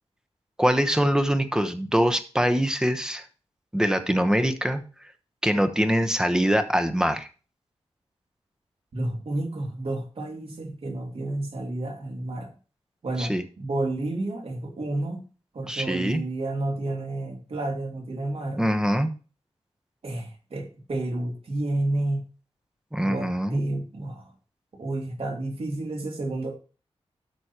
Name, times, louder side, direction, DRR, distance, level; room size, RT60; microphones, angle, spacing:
voice 1, 0.6-3.2 3.7-4.8 5.4-7.3 13.2-13.4 15.7-16.2 18.6-19.1 22.9-23.6, equal, 5° right, 9 dB, 1.0 m, -23 dB
voice 2, 8.9-12.5 13.0-15.2 15.5-18.7 20.0-22.2 23.0-24.3 24.8-26.5, right 2 dB, 65° right, 2 dB, 2.6 m, -30 dB
12.5 x 6.4 x 2.9 m, 0.36 s
wide cardioid pair, 110°, 11 cm